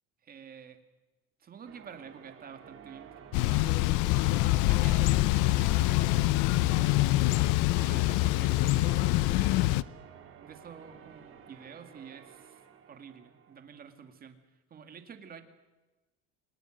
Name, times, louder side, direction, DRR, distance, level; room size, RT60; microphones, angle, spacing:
voice 1, 0.2-0.8 1.4-3.7 4.4-6.5 6.9-7.1 7.7-9.3 10.4-12.6 12.9-14.4 14.7-15.4, right 7 dB, 30° right, 7 dB, 2.4 m, -49 dB
Church bell, 1.7-13.9, right 8 dB, 45° right, 3.5 m, -52 dB
Thunder / Bicycle, 3.3-9.8, left 17 dB, 85° left, 0.8 m, -25 dB
25.5 x 21.0 x 6.6 m, 1.1 s
cardioid pair, 155°, 30 cm